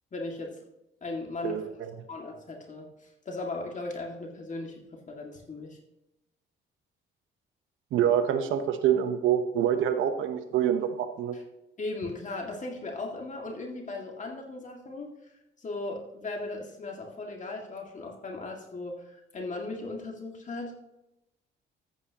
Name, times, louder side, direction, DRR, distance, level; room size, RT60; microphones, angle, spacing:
voice 1, 0.1-0.6 1.0-1.6 2.1-5.8 11.3-11.4 11.8-15.1 15.6-20.8, left 2 dB, 40° left, 1 dB, 2.1 m, -37 dB
voice 2, 1.4-1.9 7.9-11.3, right 9 dB, 85° right, 8 dB, 1.0 m, -26 dB
14.0 x 8.5 x 2.9 m, 0.91 s
cardioid pair, 90°, 20 cm